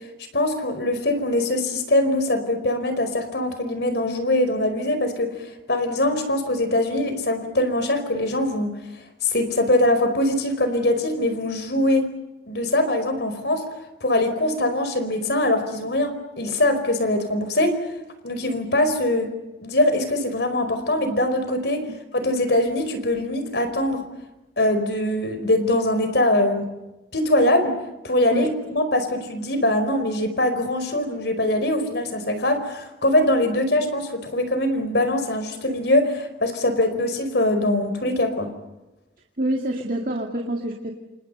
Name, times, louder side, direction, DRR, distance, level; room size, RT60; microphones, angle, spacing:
voice 1, 0.3-8.7 9.2-12.1 12.5-13.6 14.0-17.8 18.2-19.3 19.6-21.8 22.1-24.0 24.6-26.7 27.1-27.8 28.0-38.5, left 1 dB, 60° left, 9 dB, 4.8 m, -22 dB
voice 2, 39.4-40.9, right 1 dB, 45° right, 2 dB, 2.3 m, -26 dB
28.5 x 28.0 x 5.6 m, 1.0 s
head